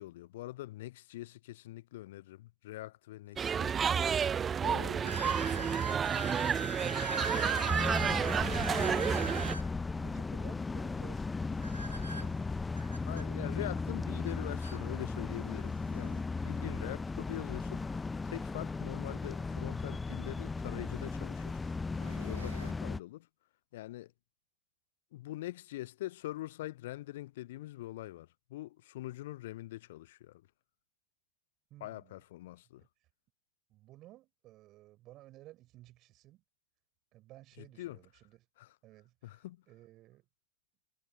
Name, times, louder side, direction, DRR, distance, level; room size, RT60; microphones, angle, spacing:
voice 1, 0.0-3.8 4.6-5.2 5.5-5.8 13.1-21.6 22.2-23.3 23.7-24.1 25.1-30.4 31.8-32.8 37.6-38.0 38.6-38.7 39.2-39.6, left 16 dB, 55° left, 0.7 m, -43 dB
sound 1, 3.3-3.4 4.1-4.2 5.0-9.7 11.6-13.3 14.3-14.4 14.6-14.8 15.6-15.7 17.9-18.0 20.1-20.2 20.9-21.2 21.8-22.7, right 1 dB, 85° right, 0.7 m, -42 dB
sound 2, 3.4-9.5, right 7 dB, 20° right, 0.4 m, -30 dB
sound 3, 7.7-23.0, left 3 dB, 10° left, 0.8 m, -36 dB
voice 2, 9.8-12.4 16.6-16.9 31.7-32.2 32.8-32.9 33.7-36.4 37.1-38.5 38.8-39.4 39.7-40.2, right 16 dB, 35° right, 4.7 m, -55 dB
figure-of-eight pair, 90°, 0 cm